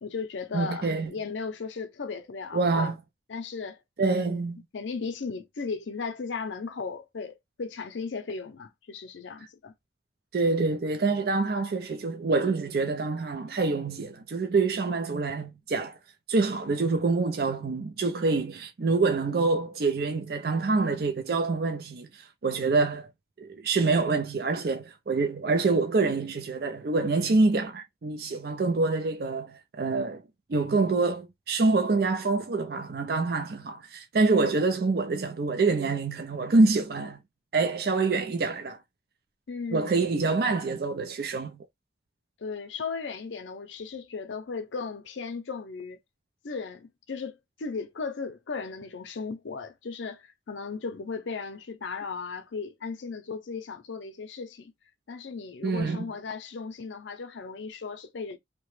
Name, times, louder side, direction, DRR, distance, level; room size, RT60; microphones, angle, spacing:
voice 1, 0.0-2.9 3.3-4.4 4.7-9.7 39.5-40.0 42.4-46.0 46.4-54.7 55.1-58.4, left 4 dB, 85° left, 0.5 m, -36 dB
voice 2, 0.5-1.1 2.5-3.0 4.0-4.6 10.3-16.0 16.3-23.1 23.4-30.2 30.5-37.2 37.5-38.8 39.7-41.6 55.6-56.1, right 3 dB, 55° right, 0.4 m, -26 dB
2.9 x 2.1 x 3.1 m
head